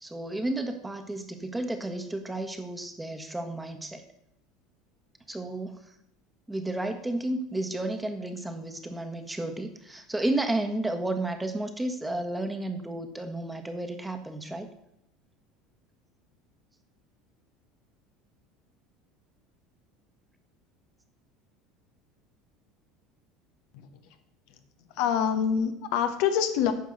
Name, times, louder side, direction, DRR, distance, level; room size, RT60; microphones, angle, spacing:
voice 1, 0.0-4.0 5.3-5.8 6.5-14.7, right 2 dB, 10° right, 7 dB, 1.4 m, -32 dB
voice 2, 24.9-26.7, left 8 dB, 70° left, 7 dB, 1.0 m, -25 dB
9.6 x 5.4 x 6.5 m, 0.77 s
hypercardioid pair, 85°, 0 cm